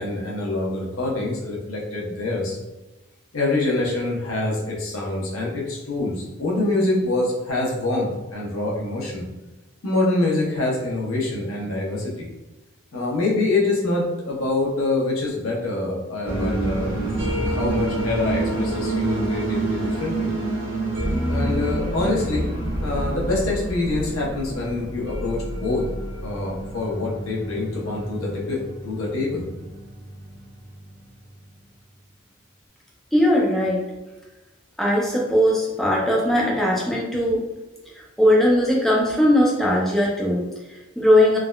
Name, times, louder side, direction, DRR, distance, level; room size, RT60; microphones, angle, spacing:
voice 1, 0.0-2.6 3.3-9.3 9.8-12.3 12.9-16.9 17.4-20.3 21.3-22.5 22.8-25.9 26.2-29.5, left 2 dB, 90° left, -2 dB, 0.7 m, -25 dB
sound 1, 16.2-31.4, right 1 dB, 70° right, 1.0 m, -28 dB
voice 2, 33.1-33.9 34.8-37.4 38.2-41.4, left 1 dB, ahead, -4 dB, 0.4 m, -19 dB
3.5 x 2.1 x 2.2 m, 1.1 s
head